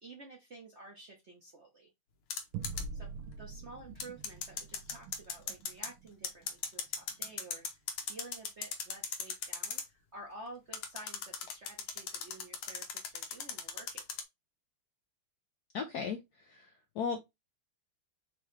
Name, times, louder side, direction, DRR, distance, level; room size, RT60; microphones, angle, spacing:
voice 1, 0.0-1.9 2.9-3.1 3.4-7.6 8.1-14.1, right 2 dB, 50° right, 0.8 m, -51 dB
sound 1, 2.3-2.8 4.0-5.9 6.2-9.8 10.7-14.2, left 6 dB, 90° left, 1.7 m, -37 dB
sound 2, 2.5-7.4, right 4 dB, 90° right, 1.6 m, -46 dB
voice 2, 15.7-17.2, left 6 dB, 70° left, 0.9 m, -37 dB
4.8 x 2.9 x 3.2 m
omnidirectional pair, 2.3 m